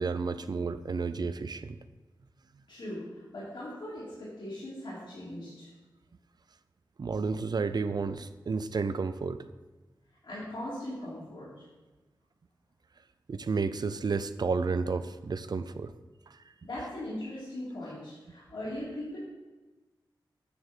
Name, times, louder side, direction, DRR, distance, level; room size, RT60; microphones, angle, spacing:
voice 1, 0.0-1.8 7.0-9.4 13.3-15.9 16.3-16.4, right 4 dB, 60° right, 12 dB, 0.5 m, -31 dB
voice 2, 2.7-5.7 10.2-11.5 16.6-19.2, left 1 dB, 70° left, -10 dB, 3.3 m, -39 dB
9.9 x 6.7 x 4.5 m, 1.2 s
wide cardioid pair, 70°, 8 cm